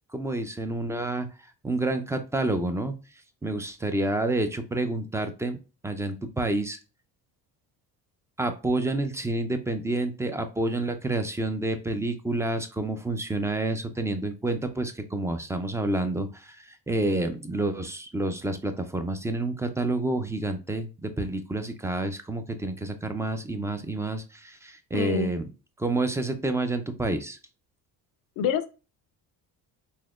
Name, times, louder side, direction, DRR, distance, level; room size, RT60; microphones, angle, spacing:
voice 1, 0.1-1.3 1.6-2.9 3.4-5.6 5.8-6.8 8.4-25.5 25.8-27.4, right 2 dB, 10° right, 0.4 m, -29 dB
voice 2, 24.9-25.3 28.4-28.7, left 8 dB, 60° left, 0.5 m, -26 dB
4.1 x 2.9 x 2.4 m
cardioid pair, 100°, 39 cm